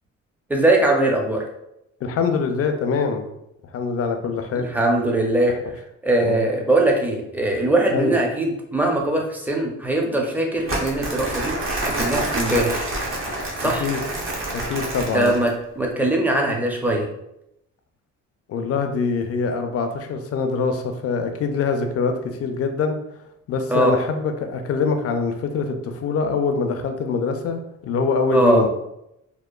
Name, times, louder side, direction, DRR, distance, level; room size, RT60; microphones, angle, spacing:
voice 1, 0.5-1.4 4.5-5.5 6.0-11.6 11.9-12.9 13.6-13.9 15.1-17.1 23.7-23.9 28.3-28.6, right 2 dB, 5° right, 0 dB, 0.5 m, -21 dB
voice 2, 2.0-3.2 3.7-4.7 6.2-6.5 7.9-8.2 13.8-14.0 14.5-15.3 18.5-23.0 23.5-28.7, left 4 dB, 50° left, 6 dB, 0.4 m, -24 dB
Crumpling crinkling, 10.7-15.5, right 1 dB, 45° right, 0.7 m, -27 dB
2.8 x 2.0 x 2.3 m, 0.84 s
cardioid pair, 90°, 30 cm